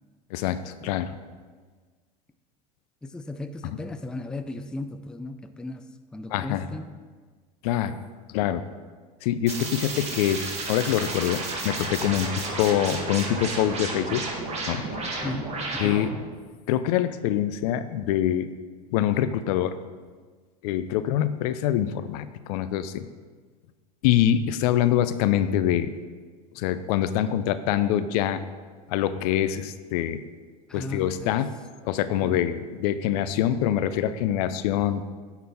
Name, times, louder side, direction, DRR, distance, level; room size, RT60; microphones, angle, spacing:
voice 1, 0.3-1.1 3.6-3.8 6.3-6.6 7.6-8.0 8.3-8.6 9.2-11.4 11.6-14.3 14.7-14.8 15.8-16.1 16.7-18.5 18.9-19.8 20.6-23.1 24.0-25.9 26.6-28.4 28.9-30.2 30.7-31.6 31.8-35.0, left 11 dB, 70° left, 13 dB, 0.5 m, -25 dB
voice 2, 3.0-5.9 6.1-6.9 15.2-15.9 30.7-31.4 32.2-32.4, left 2 dB, 5° left, 9 dB, 0.3 m, -36 dB
sound 1, 9.5-16.2, right 2 dB, 30° right, 1.6 m, -32 dB
9.5 x 4.1 x 4.3 m, 1.5 s
supercardioid pair, 105°, 21 cm